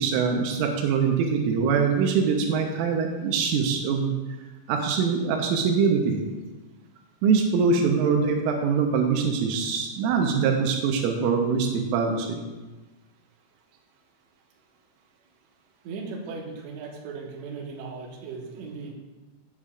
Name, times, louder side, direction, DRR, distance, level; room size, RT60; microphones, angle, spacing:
voice 1, 0.0-4.1 4.7-6.2 7.2-12.4, right 5 dB, 85° right, 2 dB, 3.5 m, -23 dB
voice 2, 15.8-18.9, right 4 dB, 70° right, -1 dB, 3.3 m, -37 dB
15.0 x 8.5 x 2.4 m, 1.2 s
omnidirectional pair, 5.6 m